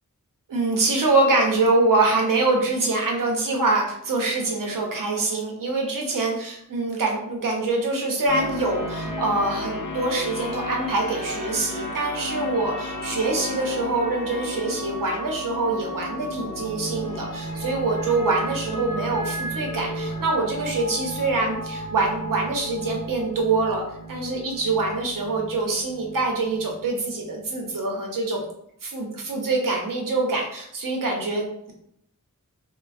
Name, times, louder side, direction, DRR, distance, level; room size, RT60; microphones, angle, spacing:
voice 1, 0.5-23.8 24.1-28.4 28.8-31.7, right 3 dB, 90° right, 1 dB, 0.7 m, -24 dB
sound 1, 8.3-27.7, equal, 75° left, 0.6 m, -33 dB
3.1 x 2.2 x 2.5 m, 0.72 s
wide cardioid pair, 80°, 32 cm